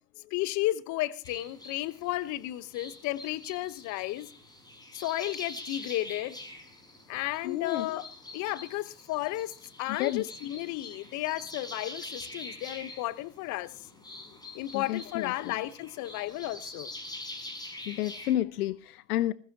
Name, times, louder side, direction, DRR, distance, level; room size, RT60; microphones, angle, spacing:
voice 1, 0.3-4.3 4.9-6.4 7.1-8.1 8.3-13.7 14.5-16.9, left 16 dB, 35° left, 1.2 m, -33 dB
sound 1, 1.2-18.3, left 2 dB, 10° left, 5.2 m, -45 dB
voice 2, 7.4-7.9 9.9-10.2 14.7-15.5 17.9-19.3, left 13 dB, 65° left, 0.8 m, -31 dB
21.0 x 15.5 x 2.9 m
hypercardioid pair, 110°, 49 cm